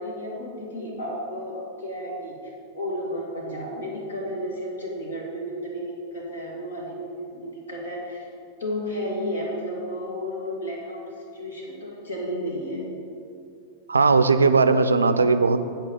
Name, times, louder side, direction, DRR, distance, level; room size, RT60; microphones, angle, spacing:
voice 1, 0.0-8.3 8.6-12.8, equal, 70° left, -3 dB, 2.2 m, -32 dB
voice 2, 13.9-15.7, right 4 dB, 75° right, 11 dB, 0.4 m, -18 dB
8.3 x 4.4 x 7.1 m, 2.5 s
figure-of-eight pair, 90°, 0 cm